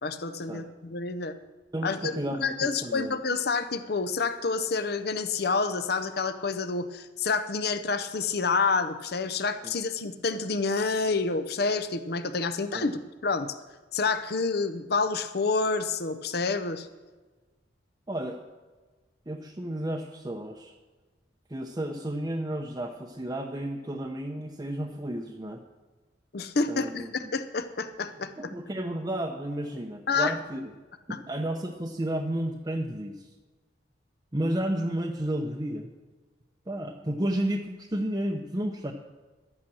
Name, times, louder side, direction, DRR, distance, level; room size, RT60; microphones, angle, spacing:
voice 1, 0.0-1.3 1.8-13.5 13.9-16.9 26.3-28.5 30.1-30.3 31.1-31.2, left 4 dB, 55° left, 11 dB, 0.7 m, -28 dB
voice 2, 1.7-3.1 9.6-9.7 12.7-12.9 18.1-18.4 19.3-20.7 21.5-25.6 26.7-27.3 28.4-30.6 31.1-33.3 34.3-35.9 36.7-38.9, right 1 dB, 20° right, 1 dB, 0.7 m, -32 dB
12.0 x 8.7 x 6.2 m, 1.3 s
head